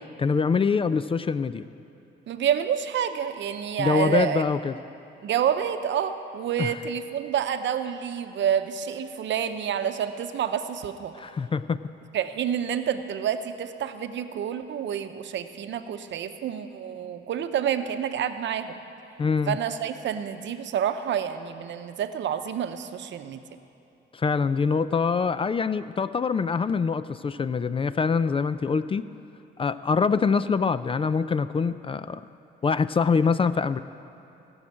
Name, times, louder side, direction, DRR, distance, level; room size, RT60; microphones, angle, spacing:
voice 1, 0.2-1.7 3.8-4.8 6.6-6.8 11.1-11.8 19.2-19.6 24.1-29.1 29.6-32.2 32.6-33.8, left 5 dB, 30° left, 14 dB, 0.4 m, -24 dB
voice 2, 2.3-4.4 5.2-11.1 12.1-18.8 19.5-23.4, right 9 dB, 65° right, 9 dB, 0.8 m, -28 dB
17.0 x 6.4 x 8.8 m, 2.7 s
cardioid pair, 90°, 20 cm